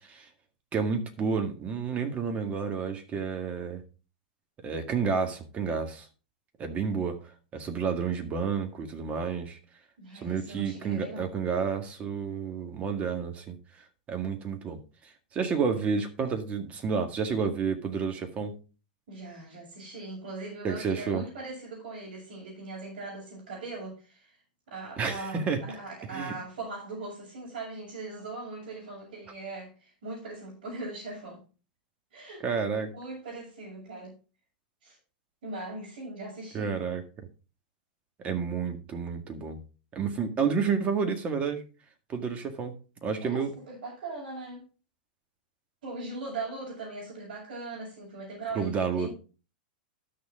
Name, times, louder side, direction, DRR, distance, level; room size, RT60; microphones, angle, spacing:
voice 1, 0.7-3.8 4.6-6.1 6.6-7.2 7.5-9.6 10.2-13.6 14.1-14.8 15.3-18.5 20.6-21.2 25.0-25.6 26.1-26.3 32.4-32.9 36.5-37.0 38.2-39.6 39.9-41.6 42.1-42.8 43.0-43.5 48.6-49.1, right 5 dB, 25° right, 6 dB, 1.8 m, -30 dB
voice 2, 10.0-11.4 19.1-24.4 24.7-31.4 32.1-32.4 32.9-34.1 34.8-35.0 35.4-36.9 43.2-44.7 45.8-49.1, right 3 dB, 70° right, -6 dB, 6.6 m, -40 dB
12.0 x 6.7 x 3.7 m, 0.34 s
hypercardioid pair, 125°, 5 cm